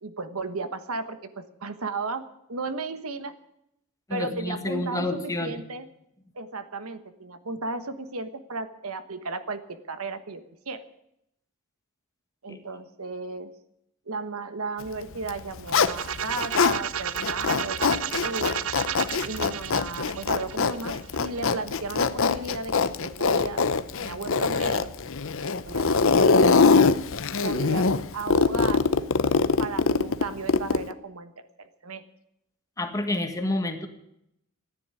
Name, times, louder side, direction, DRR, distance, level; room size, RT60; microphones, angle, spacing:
voice 1, 0.0-3.4 4.1-5.9 6.3-10.8 12.4-13.5 14.1-18.5 19.2-23.6 24.0-24.9 25.4-26.6 27.4-27.9 28.1-28.9 29.6-32.0, right 3 dB, 85° right, 11 dB, 1.3 m, -35 dB
voice 2, 4.1-5.6 12.5-12.6 32.8-33.9, left 2 dB, 15° left, 6 dB, 1.6 m, -29 dB
Zipper (clothing), 15.2-16.8 17.2-30.9, left 4 dB, 65° left, 0.8 m, -23 dB
sound 1, 15.7-21.5, right 8 dB, 65° right, 0.7 m, -33 dB
14.5 x 10.0 x 8.4 m, 0.80 s
head